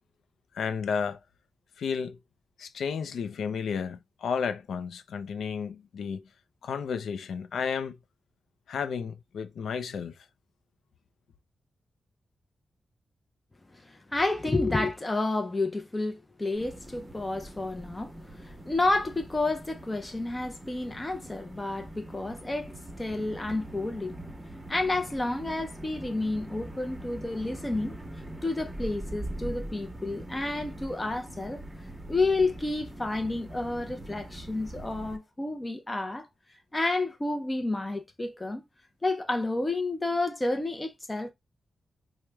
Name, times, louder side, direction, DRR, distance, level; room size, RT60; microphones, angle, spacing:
voice 1, 0.5-1.2 1.8-2.2 2.6-6.2 6.6-8.0 8.7-10.1, left 6 dB, 90° left, 0.4 m, -32 dB
voice 2, 13.7-24.1 24.7-27.9 28.4-31.6 32.1-36.3 36.7-38.6 39.0-41.3, left 2 dB, 20° left, 0.5 m, -30 dB
sound 1, 16.5-35.2, right 1 dB, 10° right, 1.0 m, -42 dB
4.6 x 2.1 x 3.3 m
wide cardioid pair, 105°, 0 cm